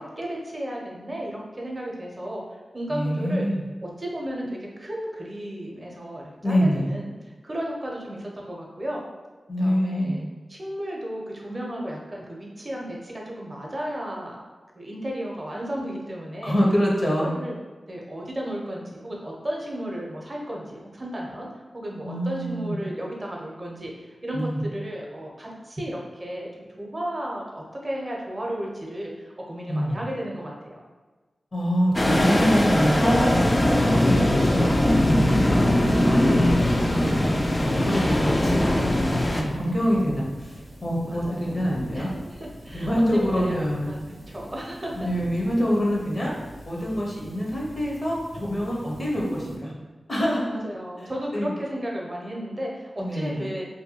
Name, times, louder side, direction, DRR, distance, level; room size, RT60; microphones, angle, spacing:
voice 1, 0.0-2.4 2.7-3.4 3.8-7.1 7.4-9.0 9.6-10.2 10.5-14.4 14.7-16.6 17.1-17.6 17.9-21.5 21.7-30.8 39.5-39.7 41.0-41.6 41.9-43.6 43.9-44.9 49.2-49.6 50.5-53.6, equal, 35° right, -2 dB, 0.6 m, -34 dB
voice 2, 2.9-3.6 6.4-6.9 9.5-10.2 16.4-17.3 22.0-22.8 24.3-24.6 29.7-30.0 31.5-33.3 33.8-35.2 35.9-37.3 37.6-38.8 39.3-42.1 42.7-43.9 44.9-46.3 46.6-49.7 50.1-50.4 51.3-51.5 53.0-53.4, equal, 45° left, -3 dB, 0.7 m, -25 dB
sound 1, 31.9-39.4, left 1 dB, 25° left, 0.3 m, -21 dB
sound 2, 34.6-49.6, equal, 85° left, 1.4 m, -39 dB
2.6 x 2.2 x 2.8 m, 1.3 s
cardioid pair, 60°, 0 cm